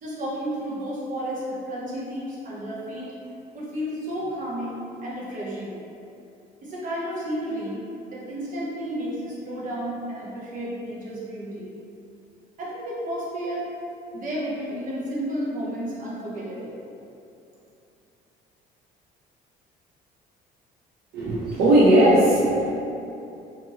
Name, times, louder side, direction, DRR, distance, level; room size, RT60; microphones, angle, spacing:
voice 1, 0.0-3.1 3.5-5.8 6.6-7.8 8.1-11.7 12.6-13.7 14.1-16.7, equal, 50° right, -7 dB, 0.9 m, -32 dB
voice 2, 21.1-22.7, right 1 dB, 75° right, -8 dB, 0.5 m, -18 dB
2.7 x 2.6 x 2.7 m, 2.7 s
cardioid pair, 110°, 17 cm